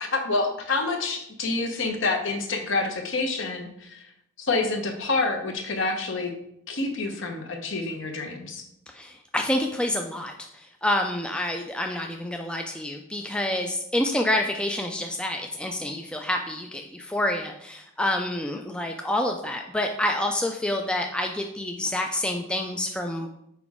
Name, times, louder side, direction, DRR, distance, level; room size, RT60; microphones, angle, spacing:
voice 1, 0.0-4.0 4.4-6.3 6.7-8.6, left 3 dB, 60° left, 4 dB, 0.9 m, -27 dB
voice 2, 8.9-23.3, left 1 dB, 5° left, 3 dB, 0.3 m, -28 dB
5.9 x 4.8 x 3.6 m, 0.77 s
head